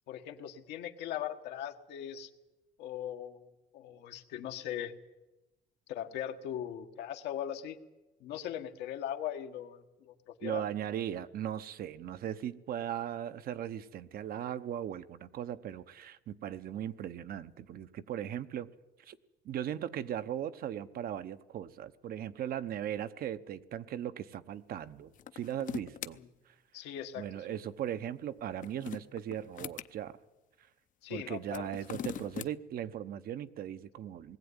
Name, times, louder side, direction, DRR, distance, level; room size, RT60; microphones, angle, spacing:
voice 1, 0.1-2.3 2.8-3.4 3.7-4.9 5.9-7.8 8.2-10.6 26.1-26.3 26.7-27.2 31.0-31.7, left 10 dB, 85° left, 1.5 m, -39 dB
voice 2, 10.4-18.7 19.0-19.2 19.4-26.2 26.5-26.6 27.2-30.2 31.1-34.4, right 10 dB, 60° right, 0.9 m, -38 dB
sound 1, 25.1-26.1 28.4-29.9 31.4-32.5, left 10 dB, 50° left, 0.7 m, -41 dB
20.0 x 15.5 x 9.8 m
cardioid pair, 110°, 17 cm